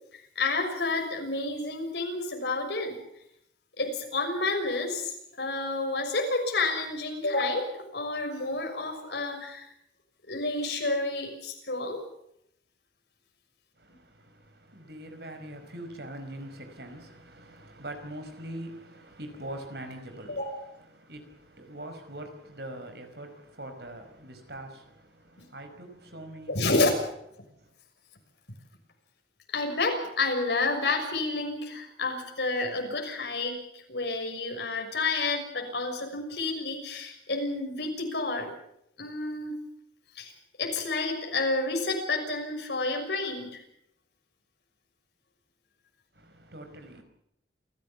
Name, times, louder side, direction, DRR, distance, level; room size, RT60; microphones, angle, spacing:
voice 1, 0.3-3.0 3.8-9.7 10.3-12.0 20.3-20.6 25.4-25.5 26.5-26.9 29.5-38.5 39.0-39.6 40.2-40.3 40.6-43.6, left 3 dB, 75° left, 6.3 m, -30 dB
voice 2, 13.8-26.9 27.6-27.7 46.1-47.0, right 1 dB, 65° right, 5.2 m, -43 dB
28.5 x 15.5 x 7.2 m
head